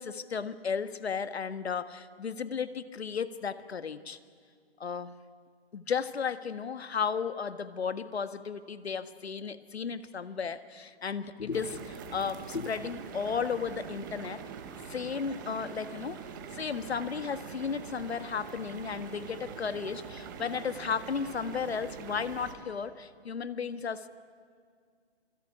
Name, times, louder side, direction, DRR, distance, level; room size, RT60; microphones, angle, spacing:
voice 1, 0.0-4.2 4.8-5.1 5.7-14.4 14.9-16.2 16.5-24.1, left 6 dB, 75° left, 12 dB, 1.7 m, -34 dB
sound 1, 11.5-22.5, right 7 dB, 20° right, 1.6 m, -44 dB
28.0 x 21.0 x 9.9 m, 2.1 s
hypercardioid pair, 175°, 32 cm